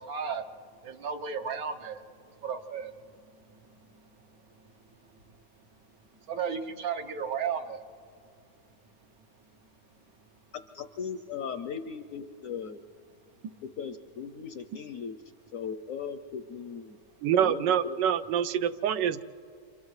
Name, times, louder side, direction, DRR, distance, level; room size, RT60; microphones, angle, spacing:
voice 1, 0.0-10.5 13.3-13.5, right 6 dB, 60° right, 7 dB, 1.4 m, -38 dB
voice 2, 10.7-12.8 13.6-15.2 15.5-17.0 17.4-18.0, left 6 dB, 65° left, 8 dB, 0.8 m, -38 dB
voice 3, 17.2-19.2, right 9 dB, 85° right, 11 dB, 1.3 m, -26 dB
30.0 x 27.5 x 3.2 m, 2.4 s
omnidirectional pair, 1.9 m